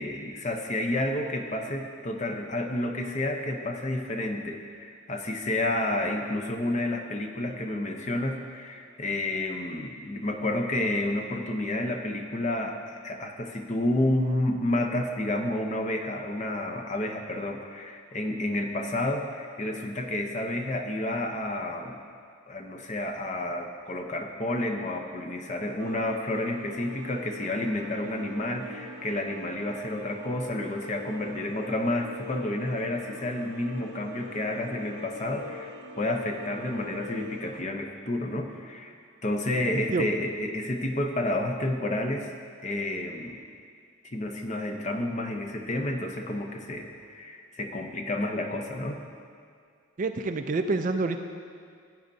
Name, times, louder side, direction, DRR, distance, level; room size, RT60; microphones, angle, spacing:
voice 1, 0.0-22.0 22.5-38.9 39.2-42.3 42.6-43.4 44.0-49.0, left 1 dB, 35° left, 3 dB, 0.7 m, -30 dB
sound 1, 25.8-37.6, left 1 dB, 75° right, 0.7 m, -43 dB
voice 2, 39.7-40.1 50.0-51.2, right 3 dB, 40° right, 7 dB, 0.4 m, -27 dB
15.0 x 8.9 x 2.7 m, 2.2 s
head